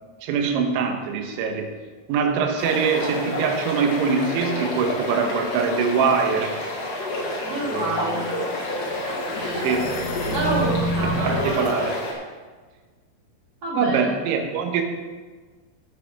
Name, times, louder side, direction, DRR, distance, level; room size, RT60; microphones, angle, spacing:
voice 1, 0.2-1.7 2.1-6.6 7.6-8.3 9.6-10.0 11.0-12.0 13.8-14.8, right 5 dB, 85° right, 4 dB, 3.5 m, -23 dB
sound 1, 2.6-12.1, left 1 dB, 45° left, 2.3 m, -29 dB
voice 2, 7.4-8.4 9.1-9.7 10.3-11.7 13.6-14.1, right 2 dB, 30° right, -5 dB, 2.2 m, -28 dB
sound 2, 8.1-11.8, equal, 70° left, 2.2 m, -30 dB
15.5 x 5.7 x 5.1 m, 1.4 s
omnidirectional pair, 5.2 m